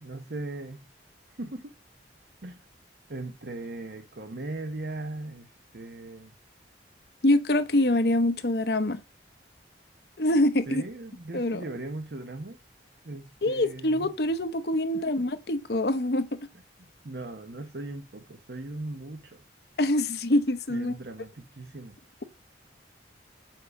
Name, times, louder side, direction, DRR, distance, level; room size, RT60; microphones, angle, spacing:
voice 1, 0.0-0.9 1.3-1.7 2.4-2.6 3.1-6.3 10.7-12.6 13.0-14.1 14.9-15.0 17.0-19.4 20.7-22.0, right 2 dB, 60° right, 0.9 m, -38 dB
voice 2, 7.2-9.0 10.2-10.9 11.3-11.6 13.4-16.3 19.8-20.9, left 1 dB, 60° left, 0.9 m, -25 dB
7.5 x 4.9 x 6.9 m
head